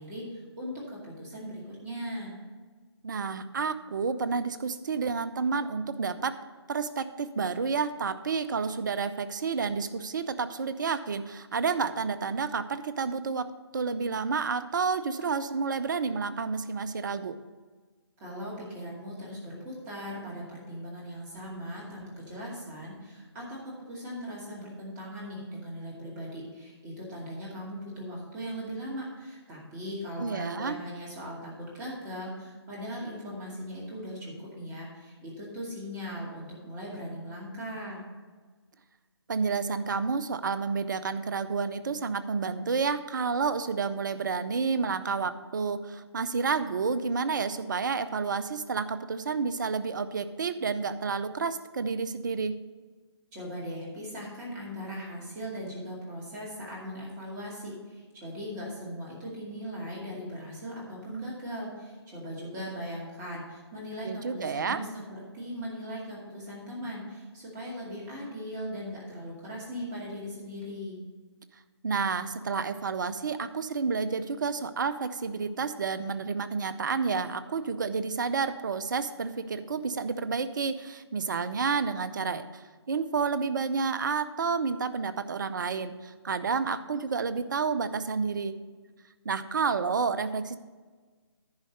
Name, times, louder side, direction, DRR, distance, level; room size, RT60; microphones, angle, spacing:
voice 1, 0.0-2.3 18.2-38.0 53.3-71.0, equal, 15° right, -5 dB, 2.3 m, -39 dB
voice 2, 3.0-6.4 6.7-17.4 30.2-30.7 39.3-52.6 64.0-64.8 71.8-88.5 89.2-90.6, right 5 dB, 45° right, 12 dB, 0.6 m, -30 dB
10.5 x 5.2 x 6.4 m, 1.4 s
figure-of-eight pair, 145°, 14 cm